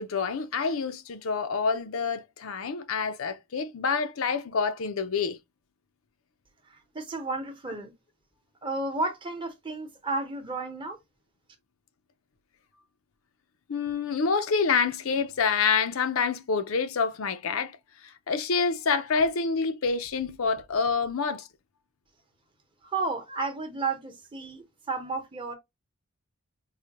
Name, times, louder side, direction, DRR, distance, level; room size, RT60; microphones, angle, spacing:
voice 1, 0.0-5.4 13.7-17.8 18.0-21.5, left 5 dB, 85° left, 0.6 m, -27 dB
voice 2, 6.7-7.9 8.6-11.0 22.8-25.5, right 3 dB, 25° right, 0.8 m, -32 dB
4.8 x 2.2 x 2.9 m
head